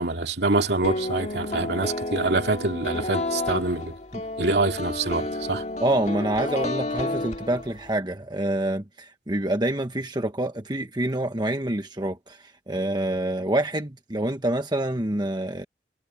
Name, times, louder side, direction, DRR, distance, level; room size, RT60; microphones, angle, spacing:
voice 1, 0.0-4.0 4.4-5.6, right 2 dB, 65° right, 2.6 m, -25 dB
sound 1, 0.8-7.9, left 2 dB, 40° left, 2.5 m, -31 dB
voice 2, 5.8-15.6, right 1 dB, 25° right, 1.3 m, -27 dB
head